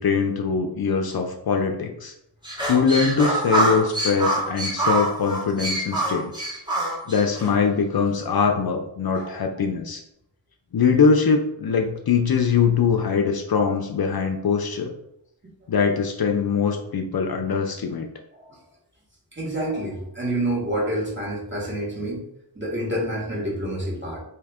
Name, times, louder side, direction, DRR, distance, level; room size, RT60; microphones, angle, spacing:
voice 1, 0.0-2.1 2.7-6.3 7.1-10.0 10.7-14.9 15.7-18.1, left 5 dB, 55° left, 3 dB, 0.6 m, -22 dB
sound 1, 2.4-7.5, right 2 dB, 10° right, 1.1 m, -25 dB
voice 2, 19.3-22.2 22.5-24.2, right 1 dB, 25° right, -4 dB, 1.5 m, -28 dB
3.7 x 2.8 x 3.5 m, 0.79 s
wide cardioid pair, 75°, 44 cm